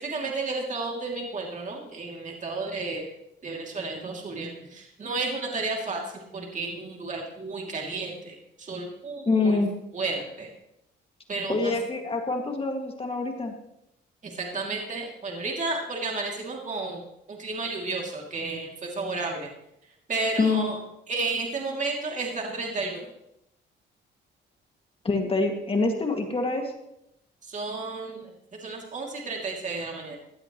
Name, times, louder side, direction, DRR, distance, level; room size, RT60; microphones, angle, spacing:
voice 1, 0.0-3.1 3.4-9.6 9.9-10.5 11.3-11.8 14.2-17.0 17.3-19.5 19.8-20.8 21.1-23.1 27.4-30.2, right 3 dB, 40° right, 0 dB, 2.7 m, -32 dB
voice 2, 9.3-9.7 11.5-13.6 20.4-20.6 25.0-26.7, left 3 dB, 30° left, 3 dB, 2.1 m, -25 dB
17.5 x 12.0 x 3.1 m, 0.82 s
cardioid pair, 90°, 20 cm